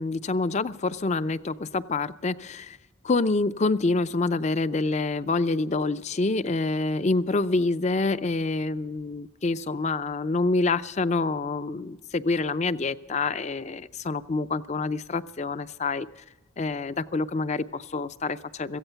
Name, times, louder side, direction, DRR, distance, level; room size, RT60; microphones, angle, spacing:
voice 1, 0.0-2.8 3.0-16.1 16.6-18.8, left 3 dB, 35° left, 15 dB, 0.5 m, -27 dB
17.0 x 15.0 x 5.7 m, 1.1 s
head